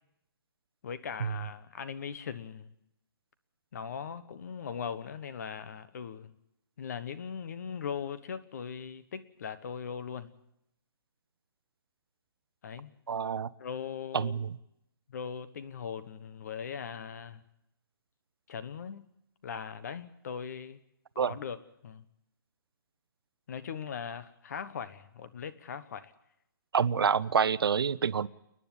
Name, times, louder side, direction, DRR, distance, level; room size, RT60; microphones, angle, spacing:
voice 1, 0.8-2.7 3.7-6.3 6.8-10.3 12.6-12.9 13.6-14.5 15.1-17.4 18.5-19.1 19.4-20.8 21.1-22.0 23.5-26.1, left 7 dB, 45° left, 12 dB, 1.3 m, -39 dB
voice 2, 13.1-13.5 14.1-14.5 21.2-21.3 26.7-28.3, right 7 dB, 75° right, 18 dB, 0.7 m, -27 dB
30.0 x 10.0 x 9.7 m, 0.82 s
hypercardioid pair, 165°, 12 cm